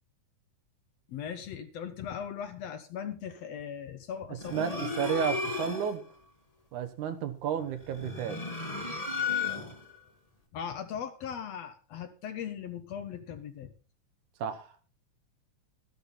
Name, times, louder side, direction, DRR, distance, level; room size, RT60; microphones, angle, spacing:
voice 1, 1.1-5.3 5.6-5.8 10.5-13.7, left 8 dB, 65° left, 9 dB, 1.8 m, -39 dB
sound 1, 4.4-6.0 7.9-9.9, left 4 dB, 25° left, 0.9 m, -34 dB
voice 2, 4.5-6.0 6.7-8.4 14.4-14.7, right 8 dB, 75° right, 9 dB, 2.6 m, -32 dB
13.5 x 11.5 x 4.2 m, 0.34 s
omnidirectional pair, 3.6 m